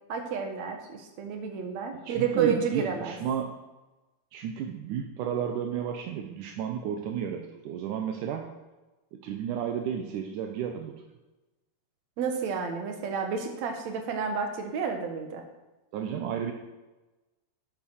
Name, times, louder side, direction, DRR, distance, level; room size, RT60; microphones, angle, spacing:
voice 1, 0.1-3.2 12.2-15.4, right 6 dB, 55° right, 4 dB, 2.2 m, -30 dB
voice 2, 2.0-3.5 4.3-8.5 9.2-10.9 15.9-16.5, right 8 dB, 75° right, 3 dB, 1.9 m, -32 dB
10.0 x 8.6 x 6.4 m, 1.1 s
omnidirectional pair, 4.6 m